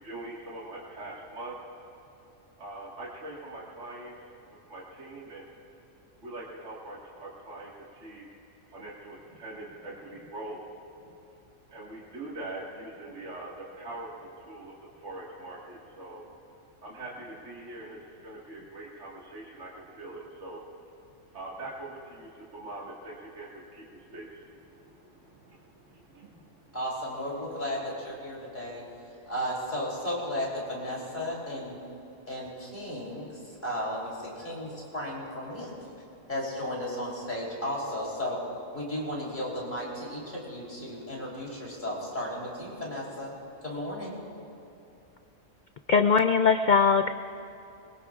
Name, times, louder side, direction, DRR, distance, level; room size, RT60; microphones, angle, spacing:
voice 1, 0.0-1.5 2.6-4.1 4.7-5.5 6.2-7.7 8.0-8.3 8.7-10.6 11.7-14.7 15.0-16.2 16.8-20.6 21.3-24.5 24.9-25.6 26.1-26.4, right 2 dB, 65° right, -5 dB, 2.2 m, -42 dB
voice 2, 26.7-28.8 29.3-31.8 32.3-35.7 36.3-38.4 38.7-43.3 43.6-44.2, equal, 35° left, -4 dB, 3.6 m, -34 dB
voice 3, 45.9-47.1, left 5 dB, 75° left, 8 dB, 0.4 m, -21 dB
23.5 x 22.5 x 2.5 m, 2.8 s
omnidirectional pair, 1.4 m